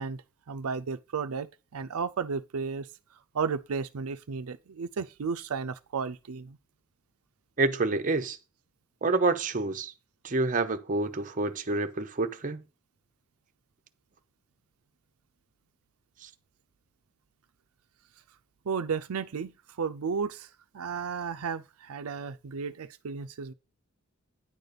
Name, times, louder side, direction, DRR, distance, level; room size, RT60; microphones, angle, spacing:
voice 1, 0.0-6.6 18.6-23.5, right 5 dB, 80° right, 0.5 m, -34 dB
voice 2, 7.6-8.4 9.0-9.9 10.2-12.6 16.2-16.3, right 3 dB, 35° right, 0.7 m, -28 dB
9.8 x 4.0 x 6.7 m
head